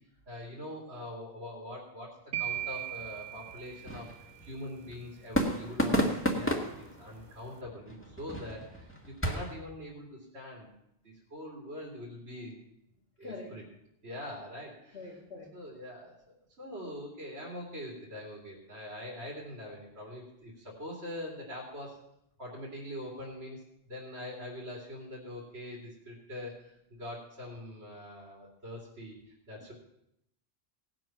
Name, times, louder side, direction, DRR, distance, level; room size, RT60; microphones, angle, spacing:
voice 1, 0.3-4.1 4.4-10.7 11.0-12.5 13.2-13.6 14.0-15.1 15.5-22.0 22.4-29.7, left 1 dB, 90° right, -3 dB, 3.2 m, -43 dB
sound 1, 2.3-4.4, right 13 dB, 50° right, 0.7 m, -38 dB
sound 2, 2.5-9.6, equal, 10° left, 1.6 m, -34 dB
voice 2, 13.2-13.5 14.9-15.5 29.6-29.7, left 3 dB, 70° left, -6 dB, 2.7 m, -44 dB
17.5 x 7.7 x 6.0 m, 0.79 s
omnidirectional pair, 1.1 m